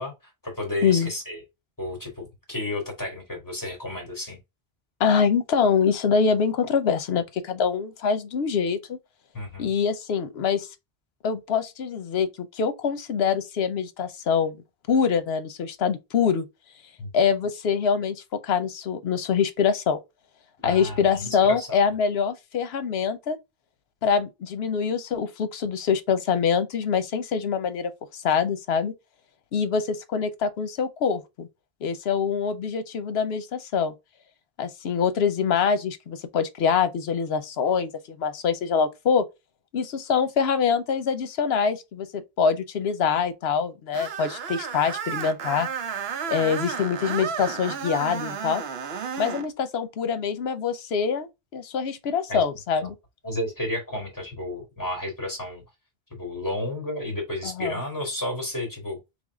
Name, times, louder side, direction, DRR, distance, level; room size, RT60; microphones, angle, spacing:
voice 1, 0.0-1.4 1.8-4.4 9.3-9.7 17.0-17.1 20.6-21.7 52.3-52.4 53.2-55.6 56.1-59.0, left 1 dB, 20° left, 2.2 m, -32 dB
voice 2, 5.0-9.0 9.6-10.7 11.2-14.6 14.9-16.5 17.1-20.0 20.6-23.4 24.0-28.9 29.5-31.5 31.8-33.9 34.6-37.9 38.2-39.3 39.7-45.7 46.3-48.6 49.2-52.9 57.4-57.8, left 6 dB, 75° left, 1.0 m, -24 dB
Screech, 43.9-49.5, right 7 dB, 75° right, 0.9 m, -32 dB
3.6 x 3.2 x 3.7 m
omnidirectional pair, 1.1 m